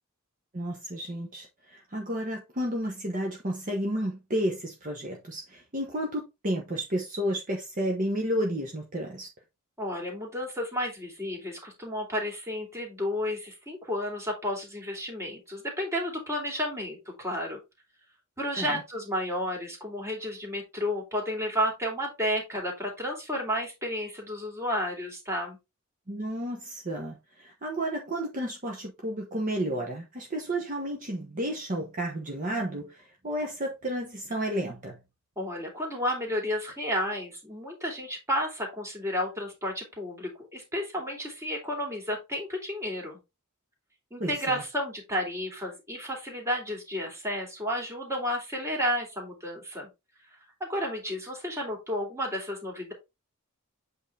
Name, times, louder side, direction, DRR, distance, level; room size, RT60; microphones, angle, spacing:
voice 1, 0.5-9.3 18.6-18.8 26.1-35.0 44.2-44.6, equal, 40° right, 1.2 m, -32 dB
voice 2, 9.8-17.6 18.4-25.6 35.4-43.2 44.1-49.9 50.6-52.9, equal, 15° right, 2.7 m, -32 dB
8.2 x 3.8 x 3.4 m
head